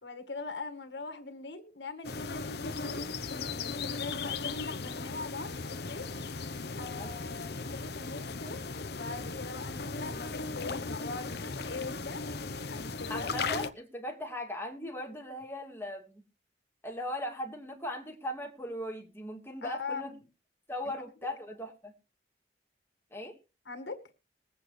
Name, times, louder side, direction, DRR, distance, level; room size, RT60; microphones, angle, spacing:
voice 1, 0.0-3.0 3.3-6.1 6.8-8.6 8.9-12.2 12.7-13.4 19.6-20.2 21.2-21.3 23.7-24.0, left 3 dB, 90° left, 2.0 m, -42 dB
sound 1, 2.0-13.7, left 4 dB, 65° left, 1.0 m, -37 dB
voice 2, 13.1-16.2 16.8-20.1 20.7-21.9 23.1-23.4, left 1 dB, 15° left, 2.5 m, -38 dB
21.5 x 8.6 x 3.3 m
head